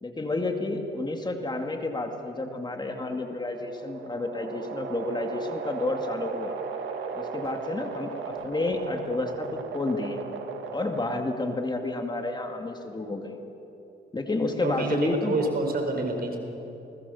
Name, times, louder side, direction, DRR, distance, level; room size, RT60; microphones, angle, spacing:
voice 1, 0.0-6.6 7.1-10.2 10.7-13.4 14.1-15.5, left 2 dB, 20° left, 3 dB, 2.4 m, -30 dB
sound 1, 3.4-11.5, right 5 dB, 75° right, 2.4 m, -36 dB
voice 2, 14.6-16.4, right 3 dB, 50° right, 3 dB, 5.2 m, -28 dB
29.5 x 19.5 x 7.2 m, 3.0 s
cardioid pair, 90°, 20 cm